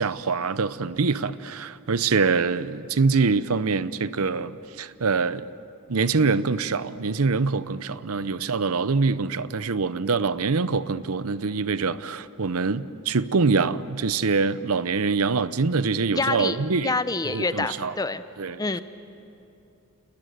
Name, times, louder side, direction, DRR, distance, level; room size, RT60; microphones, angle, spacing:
voice 1, 0.0-5.4 5.9-16.9 17.2-17.9 18.4-18.6, right 4 dB, 75° right, 0.7 m, -24 dB
voice 2, 16.1-16.6 16.8-18.2 18.6-18.8, left 3 dB, 15° left, 0.7 m, -26 dB
29.0 x 20.0 x 9.3 m
head